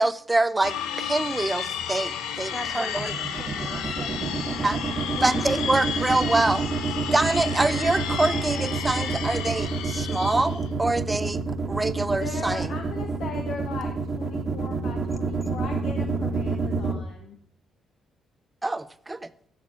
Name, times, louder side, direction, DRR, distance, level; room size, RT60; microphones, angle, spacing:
voice 1, 0.0-3.1 4.6-4.8 5.2-6.6 7.1-11.4 11.7-12.7 18.6-19.3, right 2 dB, 15° right, 0.7 m, -25 dB
sound 1, 0.6-10.7, left 8 dB, 90° left, 1.2 m, -32 dB
voice 2, 2.5-4.6 5.1-5.7, left 1 dB, 10° left, 1.8 m, -38 dB
sound 2, 3.0-16.9, right 4 dB, 40° right, 1.6 m, -28 dB
voice 3, 12.1-17.4, left 5 dB, 70° left, 1.5 m, -38 dB
14.5 x 6.6 x 6.5 m
cardioid pair, 90°, 0 cm